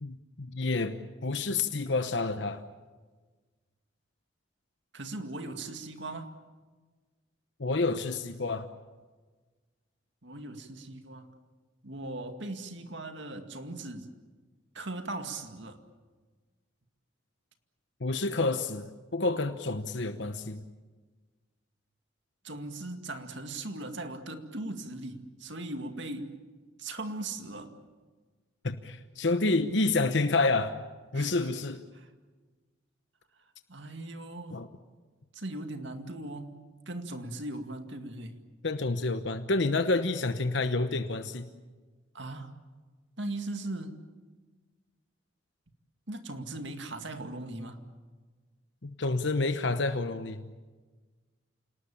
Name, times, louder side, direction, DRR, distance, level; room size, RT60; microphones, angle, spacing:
voice 1, 0.0-2.6 7.6-8.7 18.0-20.6 28.6-30.8 31.1-31.8 34.5-34.7 38.6-41.5 48.8-50.4, left 3 dB, 60° left, 9 dB, 1.0 m, -29 dB
voice 2, 4.9-6.3 10.2-11.3 11.8-14.1 14.7-15.8 22.4-26.3 26.8-27.7 31.1-31.3 31.9-32.1 33.7-34.6 35.3-36.6 36.9-38.4 42.1-42.5 43.2-44.0 46.1-47.8, right 2 dB, 65° right, 7 dB, 2.2 m, -39 dB
28.5 x 19.0 x 8.8 m, 1.4 s
head